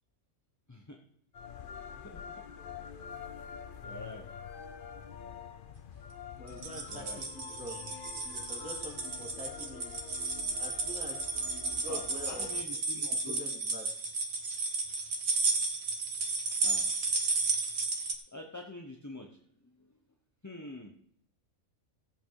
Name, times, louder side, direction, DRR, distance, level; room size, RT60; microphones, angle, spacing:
sound 1, 1.3-12.6, left 7 dB, 50° left, 0.7 m, -46 dB
voice 1, 2.0-2.4 3.8-4.3 6.9-7.2 11.9-12.0 12.3-13.4 16.6-16.9 18.3-19.3 20.4-20.9, left 2 dB, 15° left, 2 dB, 0.9 m, -45 dB
voice 2, 6.4-7.8 8.2-9.9 10.6-11.2 11.5-12.5 13.2-13.8, equal, 5° right, -1 dB, 2.3 m, -45 dB
sound 2, 6.5-18.1, right 3 dB, 90° right, 1.9 m, -33 dB
16.0 x 8.1 x 4.8 m, 0.63 s
omnidirectional pair, 1.4 m